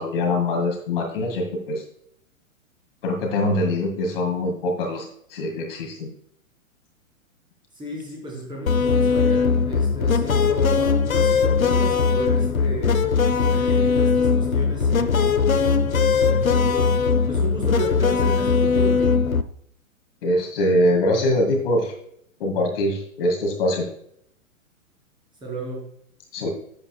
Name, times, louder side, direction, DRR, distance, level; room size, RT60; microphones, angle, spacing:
voice 1, 0.0-1.8 3.0-6.1 20.2-21.9 22.4-23.9 26.3-26.5, left 1 dB, 40° left, 2 dB, 2.0 m, -23 dB
voice 2, 7.7-13.1 13.5-17.0 17.3-19.2 25.4-25.9, right 2 dB, 10° right, -2 dB, 3.8 m, -33 dB
sound 1, 8.7-19.4, left 5 dB, 80° left, 0.7 m, -20 dB
11.0 x 7.9 x 2.2 m, 0.69 s
figure-of-eight pair, 115°, 41 cm